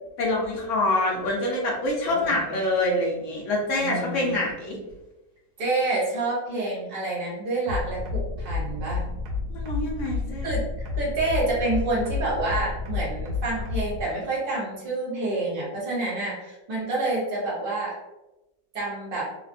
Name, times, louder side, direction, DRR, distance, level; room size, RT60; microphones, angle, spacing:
voice 1, 0.2-4.8 9.5-10.5, left 1 dB, 70° left, -2 dB, 0.7 m, -26 dB
voice 2, 3.8-4.4 4.7-4.8 5.6-9.0 10.4-17.9 18.7-19.2, right 2 dB, 45° right, -5 dB, 0.8 m, -28 dB
sound 1, 7.7-14.0, left 4 dB, 70° right, 1.1 m, -30 dB
3.2 x 2.2 x 2.5 m, 1.0 s
omnidirectional pair, 1.9 m